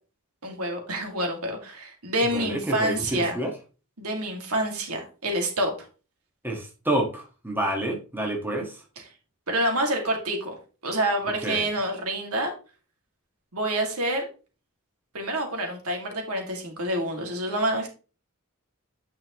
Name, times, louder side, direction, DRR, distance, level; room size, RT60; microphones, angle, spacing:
voice 1, 0.4-3.4 4.0-5.7 9.5-10.5 10.8-12.5 13.5-14.3 15.1-17.9, right 1 dB, 90° right, 3 dB, 2.3 m, -27 dB
voice 2, 2.3-3.5 6.4-8.8 11.4-11.7, right 1 dB, 10° right, 0 dB, 1.6 m, -28 dB
9.5 x 5.4 x 3.1 m, 0.35 s
head